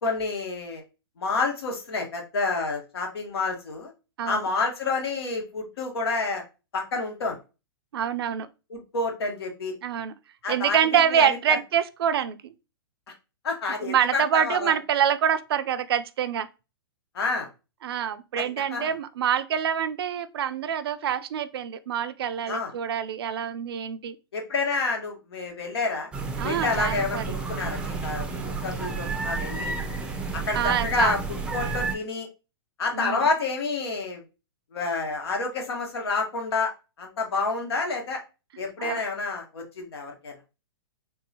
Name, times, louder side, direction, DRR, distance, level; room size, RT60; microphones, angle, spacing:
voice 1, 0.0-0.8 1.2-3.9 4.2-6.4 6.7-7.4 8.7-9.7 10.4-11.6 13.4-14.7 17.1-17.5 18.3-18.4 18.7-18.9 22.5-22.7 24.3-26.1 26.4-29.7 30.3-31.2 31.5-32.3 32.8-34.2 34.7-36.7 37.0-38.2 38.6-40.3, left 3 dB, 75° left, 1.3 m, -29 dB
voice 2, 4.2-4.5 7.9-8.5 9.8-10.1 10.5-12.5 13.8-16.5 17.8-24.2 26.4-27.4 30.5-31.1 32.9-33.3 38.8-39.0, right 8 dB, 70° right, 0.4 m, -26 dB
sound 1, 26.1-32.0, right 4 dB, 10° right, 0.5 m, -31 dB
3.7 x 2.7 x 2.7 m
hypercardioid pair, 125°, 13 cm